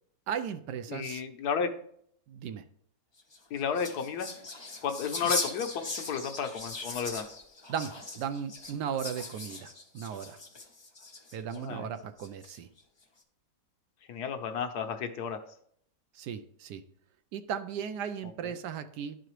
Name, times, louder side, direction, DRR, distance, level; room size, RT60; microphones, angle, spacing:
voice 1, 0.3-1.2 2.3-2.6 7.7-10.4 11.3-12.7 16.1-16.8 17.3-19.2, right 8 dB, 75° right, 11 dB, 1.2 m, -36 dB
voice 2, 0.9-1.7 3.5-4.3 4.8-7.3 11.5-11.9 14.1-15.4 18.4-18.6, left 6 dB, 70° left, 7 dB, 1.2 m, -33 dB
sound 1, 3.2-11.6 12.2-12.8, left 3 dB, 35° left, 0.4 m, -39 dB
11.0 x 4.9 x 3.1 m, 0.65 s
omnidirectional pair, 1.8 m